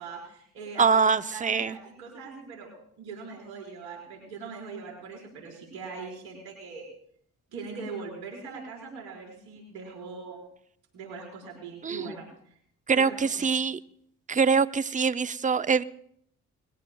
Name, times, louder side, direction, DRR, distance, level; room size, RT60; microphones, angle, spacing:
voice 1, 0.0-2.7 3.0-6.9 7.5-10.4 10.9-12.3 12.9-13.5, right 4 dB, 85° right, -1 dB, 5.0 m, -41 dB
voice 2, 0.8-1.8 11.8-12.1 12.9-13.8 14.3-15.8, right 5 dB, 20° right, 14 dB, 0.6 m, -24 dB
20.5 x 16.5 x 2.3 m, 0.66 s
hypercardioid pair, 40°, 37 cm